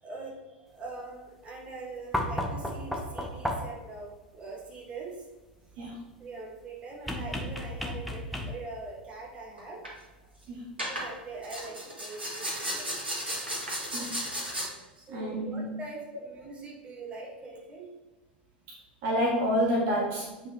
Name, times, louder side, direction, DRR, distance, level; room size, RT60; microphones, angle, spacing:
voice 1, 0.0-5.2 6.2-9.8 10.8-13.3 15.0-17.9, right 3 dB, 20° right, -3 dB, 2.2 m, -43 dB
sound 1, 2.1-3.9 7.1-8.8 10.3-10.4, left 1 dB, ahead, 1.0 m, -33 dB
sound 2, 9.6-9.9 10.8-11.1 11.4-14.7, equal, 80° right, 2.1 m, -34 dB
voice 2, 15.1-15.7 19.0-20.5, equal, 45° right, -3 dB, 1.8 m, -28 dB
8.5 x 5.3 x 3.4 m, 1.1 s
figure-of-eight pair, 85°, 6 cm